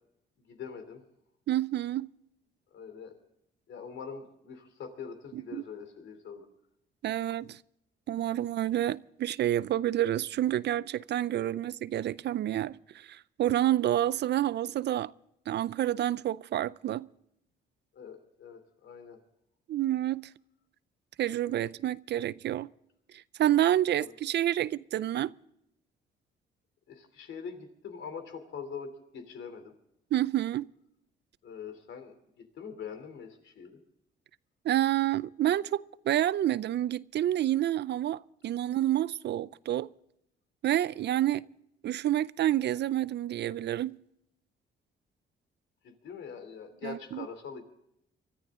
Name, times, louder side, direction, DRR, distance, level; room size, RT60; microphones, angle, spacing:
voice 1, 0.5-1.0 2.7-3.2 3.7-6.5 17.9-19.2 23.9-24.1 26.9-29.7 31.4-32.1 32.5-33.8 45.8-47.6, left 6 dB, 70° left, 3.1 m, -43 dB
voice 2, 1.5-2.1 5.3-5.6 7.0-7.6 8.1-15.1 15.5-17.1 19.7-20.3 21.2-22.7 23.1-25.3 30.1-30.7 34.6-39.9 40.6-41.5 41.8-44.0 46.8-47.3, right 12 dB, 60° right, 0.5 m, -29 dB
24.0 x 14.0 x 3.7 m
cardioid pair, 90°, 20 cm